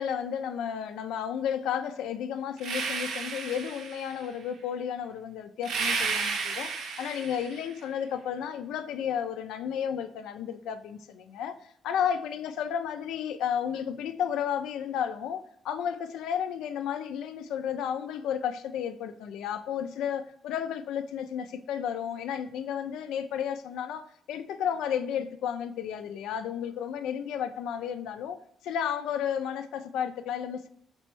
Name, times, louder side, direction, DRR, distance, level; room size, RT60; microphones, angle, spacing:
voice 1, 0.0-11.6 11.8-28.4 28.6-30.7, left 8 dB, 85° left, 0.3 m, -32 dB
sound 1, 2.6-4.2 5.6-7.7, right 4 dB, 80° right, 0.7 m, -32 dB
4.2 x 3.0 x 3.1 m
cardioid pair, 90°, 0 cm